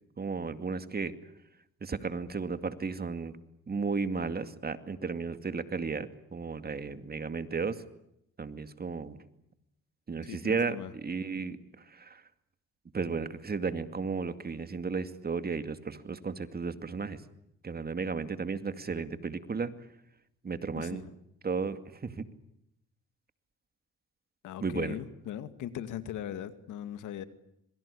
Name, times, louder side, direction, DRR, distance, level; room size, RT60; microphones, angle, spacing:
voice 1, 0.2-1.1 1.8-3.4 3.7-7.8 8.4-9.2 10.1-12.2 12.9-17.2 17.6-19.7 20.4-21.0 21.4-22.3 24.6-25.0, right 4 dB, 30° right, 11 dB, 2.3 m, -34 dB
voice 2, 10.3-10.9 20.8-21.1 24.4-27.2, left 10 dB, 85° left, 12 dB, 2.2 m, -39 dB
26.5 x 23.0 x 8.5 m, 0.79 s
cardioid pair, 90°, 30 cm